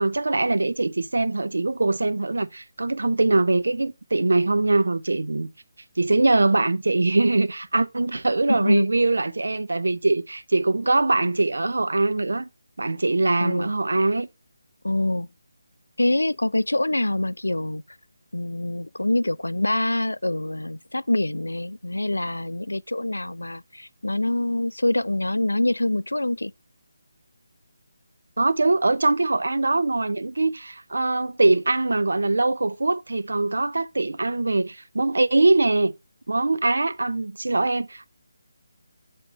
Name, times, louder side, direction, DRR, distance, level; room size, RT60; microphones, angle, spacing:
voice 1, 0.0-5.5 6.0-12.5 12.8-14.3 28.4-35.9 36.3-38.1, right 2 dB, 70° right, 0.7 m, -22 dB
voice 2, 8.5-8.9 13.4-13.7 14.8-15.3 16.0-17.8 18.3-26.5, left 1 dB, 85° left, 0.3 m, -25 dB
8.2 x 3.5 x 5.4 m
figure-of-eight pair, 155°, 0 cm